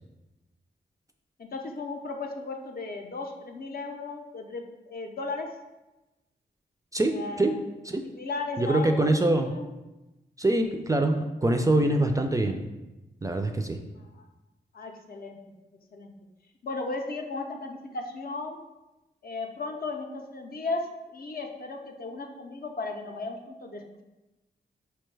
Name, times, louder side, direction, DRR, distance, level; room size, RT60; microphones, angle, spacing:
voice 1, 1.4-5.5 7.1-7.6 8.0-9.1 9.4-9.7 14.0-14.3 14.7-15.4 15.9-16.1 16.6-18.6 19.2-20.9 21.1-24.0, left 3 dB, 55° left, 3 dB, 0.5 m, -35 dB
voice 2, 6.9-7.5 7.8-8.0 8.6-9.5 10.4-12.6 13.2-13.8, right 2 dB, 20° right, 5 dB, 0.3 m, -24 dB
4.4 x 2.2 x 3.2 m, 1.0 s
cardioid pair, 60°, 18 cm